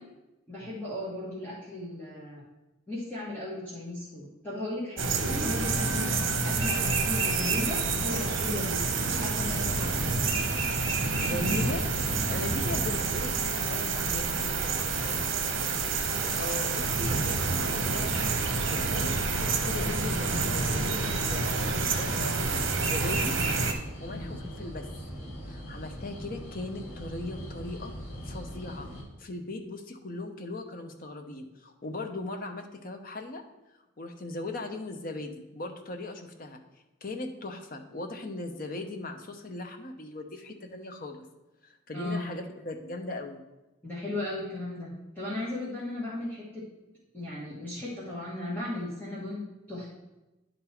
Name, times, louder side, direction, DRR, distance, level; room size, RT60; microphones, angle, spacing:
voice 1, 0.5-2.4 2.9-6.1 6.4-10.0 24.1-24.3 41.9-42.3 43.8-46.6 47.1-49.9, left 1 dB, 10° left, -9 dB, 1.5 m, -36 dB
sound 1, 5.0-23.7, right 4 dB, 75° right, 0.9 m, -28 dB
sound 2, 9.4-29.0, equal, 70° left, 2.3 m, -41 dB
voice 2, 11.2-11.9 12.3-14.4 14.9-15.2 16.1-23.4 24.0-24.9 25.5-27.9 28.2-28.9 29.2-33.4 34.0-36.6 37.0-41.3 41.6-43.4, left 2 dB, 45° left, 5 dB, 0.7 m, -39 dB
10.5 x 4.0 x 4.3 m, 1.0 s
head